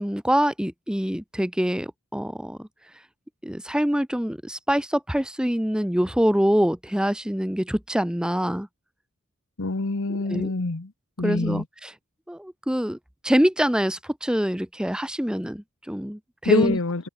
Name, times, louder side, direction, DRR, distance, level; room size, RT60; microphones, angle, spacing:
voice 1, 0.0-2.7 3.4-8.7 10.1-10.5 11.2-11.9 12.3-13.0 13.2-16.8, equal, 5° right, 0.9 m, -25 dB
voice 2, 9.6-10.9 11.2-11.6 16.4-17.1, left 2 dB, 65° left, 1.1 m, -25 dB
head